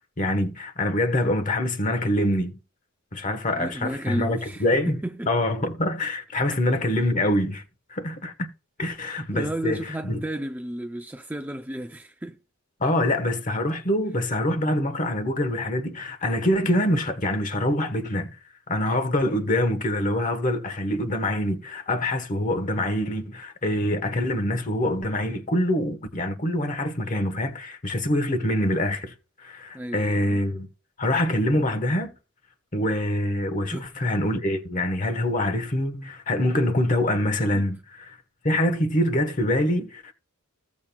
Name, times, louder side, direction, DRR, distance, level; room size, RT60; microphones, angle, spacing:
voice 1, 0.2-2.6 3.1-5.0 5.3-7.6 7.9-8.5 8.8-10.2 12.8-18.4 18.7-29.1 29.4-30.7 31.0-32.1 32.7-38.2 38.4-40.1, left 1 dB, 35° left, 1.2 m, -25 dB
voice 2, 3.6-5.3 6.5-6.6 8.8-9.0 9.3-12.4 28.3-28.5 29.7-30.4 33.7-33.9 37.5-37.6, right 1 dB, 10° right, 0.5 m, -33 dB
16.0 x 7.2 x 2.3 m
head